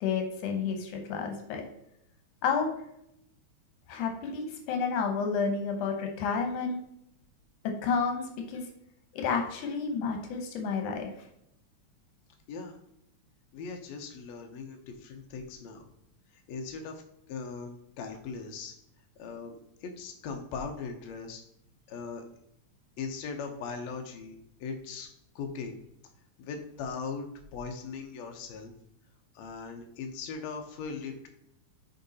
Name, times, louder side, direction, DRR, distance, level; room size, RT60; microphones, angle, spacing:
voice 1, 0.0-1.6 2.4-2.7 3.9-6.8 7.6-8.6 9.1-11.1, left 5 dB, 90° left, 3 dB, 2.5 m, -30 dB
voice 2, 13.5-15.9 16.5-17.0 17.3-18.8 19.2-21.4 21.9-22.2 23.0-25.1 25.4-25.8 26.4-27.3 27.5-28.7 29.3-31.3, left 5 dB, 70° left, 3 dB, 1.9 m, -39 dB
6.7 x 4.5 x 4.1 m, 0.75 s
omnidirectional pair, 3.4 m